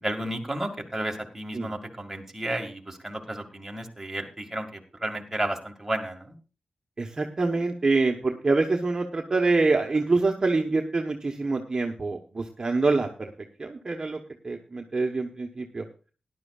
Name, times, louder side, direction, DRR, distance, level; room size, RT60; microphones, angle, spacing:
voice 1, 0.0-6.4, right 1 dB, 10° right, 1 dB, 2.1 m, -32 dB
voice 2, 7.0-13.3 13.6-14.2 14.4-15.8, right 3 dB, 30° right, 2 dB, 1.2 m, -25 dB
18.5 x 11.0 x 2.4 m, 0.34 s
wide cardioid pair, 145°, 2 cm